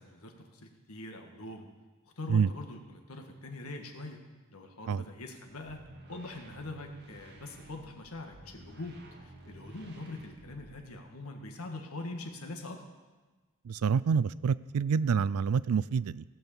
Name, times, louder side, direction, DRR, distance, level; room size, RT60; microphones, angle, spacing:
voice 1, 0.0-1.7 2.2-4.2 4.5-12.8, left 2 dB, 85° left, 4 dB, 1.7 m, -43 dB
sound 1, 5.6-11.0, right 2 dB, 50° right, 1.7 m, -52 dB
voice 2, 13.6-16.2, right 6 dB, 85° right, 19 dB, 0.4 m, -27 dB
17.0 x 6.3 x 7.0 m, 1.3 s
head